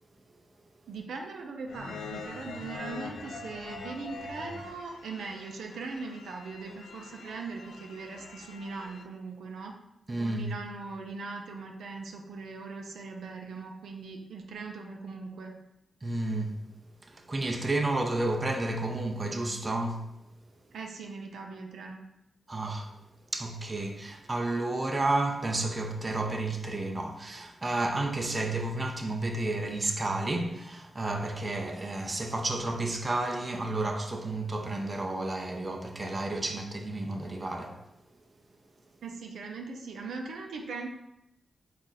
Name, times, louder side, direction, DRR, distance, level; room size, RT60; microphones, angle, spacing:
voice 1, 0.9-9.7 10.2-15.5 20.7-22.0 39.0-40.9, right 4 dB, 90° right, 0.5 m, -40 dB
sound 1, 1.7-9.0, left 3 dB, 80° left, 0.5 m, -44 dB
voice 2, 10.1-10.5 16.0-16.6 17.1-20.1 22.5-22.9 23.3-37.8, right 2 dB, 30° right, 0.5 m, -31 dB
4.1 x 2.4 x 3.9 m
cardioid pair, 75°, 0 cm